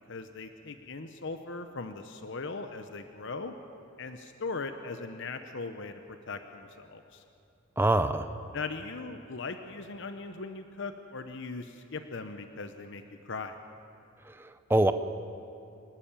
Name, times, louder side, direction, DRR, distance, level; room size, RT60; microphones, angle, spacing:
voice 1, 0.1-3.5 4.0-7.2 8.5-13.6, left 3 dB, 60° left, 8 dB, 0.8 m, -39 dB
voice 2, 7.8-8.3 14.3-14.9, right 1 dB, 10° right, 9 dB, 0.5 m, -25 dB
25.5 x 11.5 x 8.9 m, 2.7 s
head